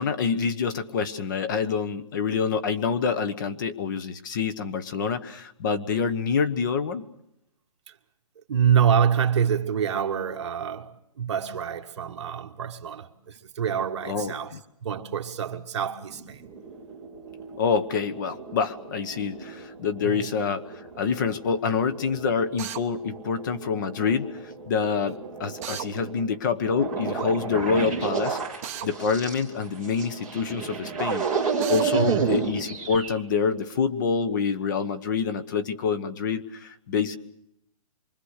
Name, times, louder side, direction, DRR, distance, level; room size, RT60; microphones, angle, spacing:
voice 1, 0.0-7.0 14.0-14.6 17.6-28.4 28.8-31.3 31.7-37.2, left 6 dB, 30° left, 1.2 m, -27 dB
voice 2, 8.5-14.5 14.8-16.4 20.0-20.3 31.9-32.3, right 8 dB, 50° right, 1.6 m, -26 dB
sound 1, 16.1-33.2, right 5 dB, 5° left, 3.0 m, -32 dB
Drill, 22.6-22.8 25.6-25.9 28.6-28.9 31.6-31.9, right 11 dB, 25° right, 1.0 m, -34 dB
26.0 x 24.0 x 6.6 m
hypercardioid pair, 170°, 19 cm